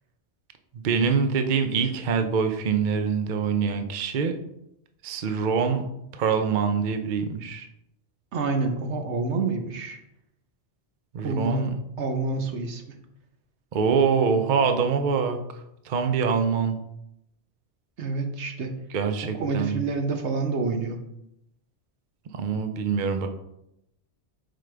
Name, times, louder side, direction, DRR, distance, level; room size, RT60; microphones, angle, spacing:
voice 1, 0.7-4.4 5.0-5.8 6.1-7.7 11.1-11.8 13.7-15.4 15.8-16.8 18.9-19.8 22.3-23.3, right 6 dB, 50° right, 6 dB, 0.7 m, -24 dB
voice 2, 8.3-10.0 11.2-11.7 12.0-13.0 18.0-18.8 19.3-21.0, right 3 dB, 80° right, 5 dB, 1.2 m, -28 dB
7.7 x 4.9 x 3.4 m, 0.81 s
omnidirectional pair, 1.2 m